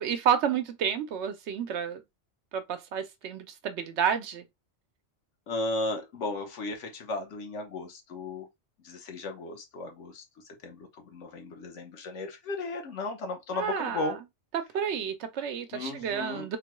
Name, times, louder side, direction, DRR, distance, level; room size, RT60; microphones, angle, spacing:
voice 1, 0.0-2.0 2.5-4.4 13.5-14.2 14.5-16.6, right 8 dB, 75° right, 0.9 m, -30 dB
voice 2, 5.5-8.5 8.8-10.2 10.6-14.2 15.7-16.5, left 2 dB, 85° left, 1.2 m, -35 dB
3.7 x 2.2 x 2.9 m
omnidirectional pair, 1.2 m